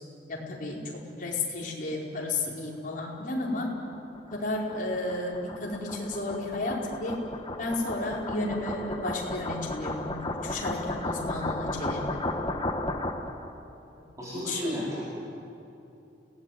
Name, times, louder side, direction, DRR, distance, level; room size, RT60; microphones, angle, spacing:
voice 1, 0.3-3.7 4.3-7.1 7.6-12.2 14.3-14.8, left 2 dB, 50° left, -2 dB, 4.9 m, -32 dB
sound 1, 3.5-13.5, left 2 dB, 25° left, 1.4 m, -34 dB
voice 2, 14.2-15.1, equal, 20° right, -7 dB, 4.3 m, -33 dB
30.0 x 18.5 x 9.6 m, 2.8 s
head